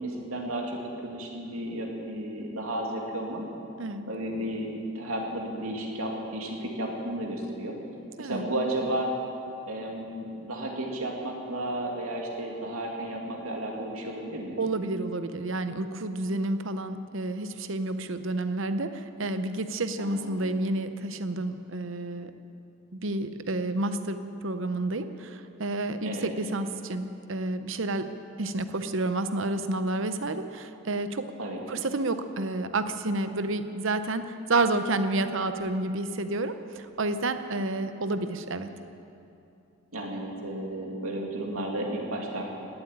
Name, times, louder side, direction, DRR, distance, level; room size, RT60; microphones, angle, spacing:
voice 1, 0.0-3.4 4.1-7.7 8.2-9.1 9.7-14.6 20.0-20.4 26.0-26.3 31.4-31.6 39.9-42.4, right 1 dB, 75° right, -1 dB, 2.6 m, -33 dB
voice 2, 14.6-22.3 22.9-24.2 24.4-28.1 28.4-31.3 31.7-38.7, right 2 dB, 60° right, 10 dB, 0.8 m, -30 dB
17.0 x 8.0 x 9.7 m, 2.7 s
head